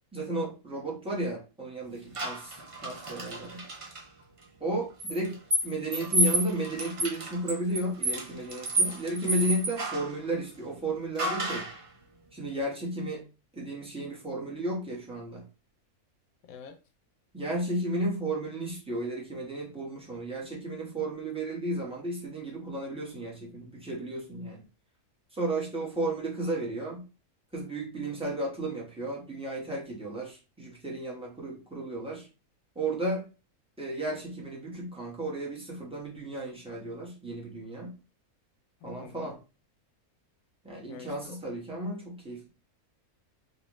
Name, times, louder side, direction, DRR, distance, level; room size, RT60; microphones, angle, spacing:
voice 1, 0.1-3.7 4.6-5.4 5.6-11.7 12.3-13.2 13.5-15.5 17.3-24.6 25.3-27.0 27.5-32.3 32.7-33.3 33.8-37.9 38.8-39.4 40.6-42.5, right 1 dB, 5° right, 1.0 m, -33 dB
sound 1, 2.1-4.0 5.0-10.1 11.2-11.8, right 1 dB, 35° right, 0.5 m, -31 dB
voice 2, 16.4-16.8 38.8-39.4 40.9-41.4, left 6 dB, 75° left, 1.0 m, -46 dB
3.9 x 2.5 x 3.0 m
omnidirectional pair, 1.6 m